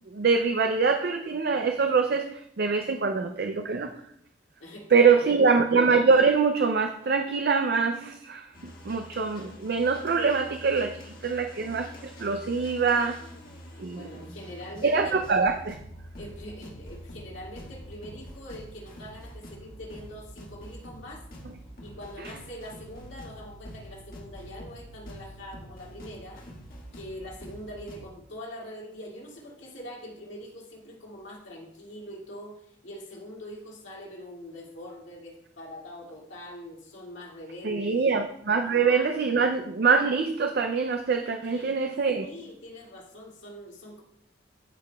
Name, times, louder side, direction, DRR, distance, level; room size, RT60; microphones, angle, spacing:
voice 1, 0.1-3.9 4.9-10.9 11.2-13.2 13.8-14.1 14.8-15.7 37.6-42.3, right 5 dB, 50° right, 6 dB, 0.4 m, -24 dB
voice 2, 4.6-5.4 13.9-15.2 16.2-21.2 21.8-26.4 26.9-38.1 38.7-39.1 41.4-41.8 42.1-44.0, equal, 70° left, -3 dB, 2.1 m, -43 dB
sound 1, 8.5-28.1, equal, 45° left, 1.5 m, -46 dB
13.5 x 4.9 x 2.3 m, 0.72 s
head